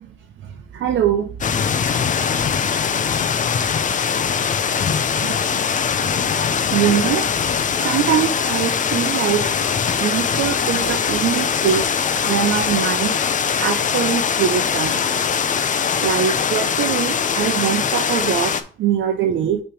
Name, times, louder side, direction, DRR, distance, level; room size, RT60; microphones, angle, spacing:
voice 1, 0.5-1.3 5.2-5.3 6.7-7.3 7.8-9.5 10.0-13.2 13.6-15.0 16.0-19.6, right 9 dB, 75° right, 4 dB, 0.8 m, -22 dB
sound 1, 1.4-18.6, left 7 dB, 40° left, 0.6 m, -21 dB
6.1 x 3.3 x 4.8 m, 0.39 s
cardioid pair, 90°, 20 cm